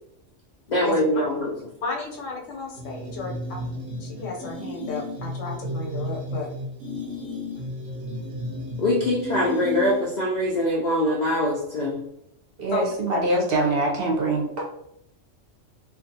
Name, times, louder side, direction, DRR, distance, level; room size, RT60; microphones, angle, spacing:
voice 1, 0.7-1.5 8.8-12.0, left 1 dB, 65° left, -3 dB, 0.4 m, -23 dB
voice 2, 1.8-3.6 4.0-6.5 12.7-12.9, left 3 dB, 85° left, 0 dB, 1.1 m, -33 dB
sound 1, 2.7-10.3, equal, 85° right, 1.0 m, -33 dB
voice 3, 12.6-14.7, right 2 dB, 60° right, -1 dB, 0.7 m, -24 dB
2.4 x 2.3 x 2.6 m, 0.77 s
omnidirectional pair, 1.3 m